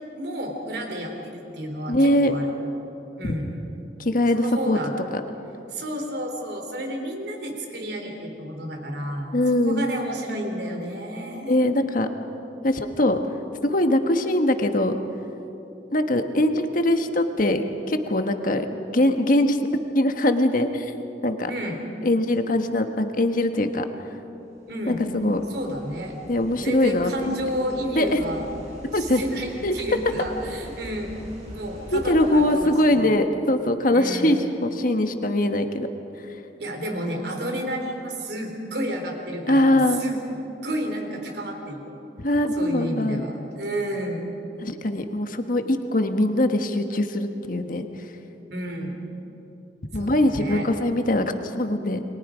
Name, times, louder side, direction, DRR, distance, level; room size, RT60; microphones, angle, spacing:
voice 1, 0.1-2.5 3.2-3.5 4.3-4.9 5.7-9.4 9.7-11.5 21.5-21.8 24.7-25.0 25.5-26.2 26.6-28.5 28.9-31.1 31.5-33.2 33.9-34.3 36.6-40.2 40.6-42.0 42.6-44.3 48.5-49.0 49.9-50.7, right 1 dB, 65° right, 2 dB, 3.7 m, -31 dB
voice 2, 1.9-2.3 3.2-3.3 4.0-4.8 9.3-9.9 11.5-12.1 12.6-13.2 13.6-15.0 15.9-19.7 19.9-20.9 21.2-21.5 22.0-24.1 24.9-25.4 26.3-27.3 27.9-28.3 28.9-29.2 29.6-29.7 31.9-35.9 39.5-40.0 42.2-43.2 44.6-47.9 49.9-52.0, left 1 dB, 50° left, 7 dB, 1.4 m, -22 dB
sound 1, 24.6-32.5, equal, 40° right, 5.8 m, -43 dB
29.0 x 23.5 x 5.1 m, 2.9 s
head